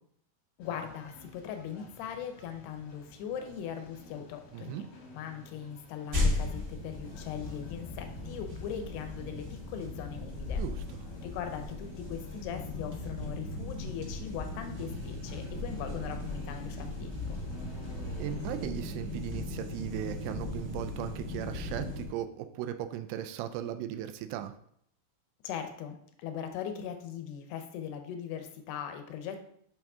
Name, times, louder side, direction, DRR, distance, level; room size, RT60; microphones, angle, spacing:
voice 1, 0.6-4.9 5.1-10.6 11.2-17.4 25.4-29.4, left 8 dB, 85° left, 6 dB, 3.0 m, -40 dB
sound 1, 0.6-18.6, left 2 dB, 55° left, 1.8 m, -53 dB
voice 2, 4.5-4.8 10.6-10.8 18.2-24.5, right 11 dB, 85° right, 9 dB, 2.6 m, -37 dB
sound 2, 6.1-22.0, left 2 dB, 35° right, 1.1 m, -37 dB
sound 3, 14.6-22.0, right 2 dB, 65° right, 2.1 m, -54 dB
8.4 x 6.1 x 3.6 m, 0.68 s
omnidirectional pair, 4.7 m